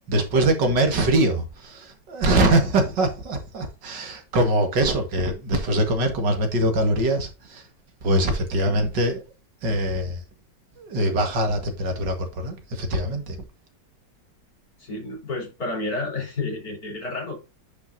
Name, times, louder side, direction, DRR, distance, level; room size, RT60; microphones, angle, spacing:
voice 1, 0.1-7.6 8.0-9.2 9.6-10.2 10.8-13.4, right 1 dB, 70° right, 2.3 m, -23 dB
voice 2, 14.8-17.4, left 2 dB, 55° left, 4.4 m, -30 dB
9.5 x 5.7 x 2.7 m
omnidirectional pair, 2.0 m